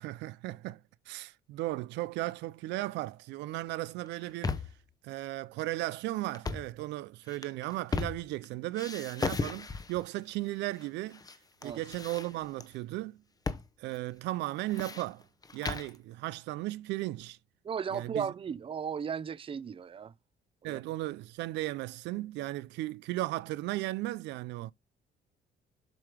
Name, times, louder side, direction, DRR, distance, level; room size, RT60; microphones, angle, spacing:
voice 1, 0.0-4.6 5.0-11.2 11.6-13.2 13.8-15.3 15.5-17.4 17.9-18.3 20.6-24.7, right 17 dB, 90° right, 0.4 m, -36 dB
sound 1, 4.1-4.9 6.3-6.8 7.3-8.5 8.8-10.1 10.8-11.4 11.6-12.7 13.5-13.7 13.9-14.0 14.5-16.0, left 4 dB, 20° left, 0.8 m, -36 dB
voice 2, 17.6-20.1 20.6-20.8, right 7 dB, 30° right, 0.6 m, -35 dB
7.6 x 3.6 x 4.9 m
cardioid pair, 110°, 18 cm